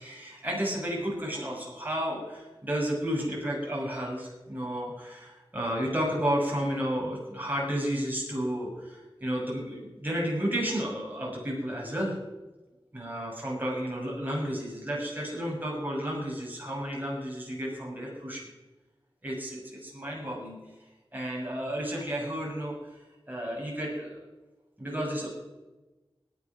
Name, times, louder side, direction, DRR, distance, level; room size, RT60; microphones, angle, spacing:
voice 1, 0.0-12.2 12.9-18.5 19.2-20.6 21.1-23.0 23.3-24.2 24.8-25.3, equal, 20° right, -4 dB, 6.9 m, -32 dB
17.0 x 10.5 x 6.2 m, 1.1 s
wide cardioid pair, 40°, 9 cm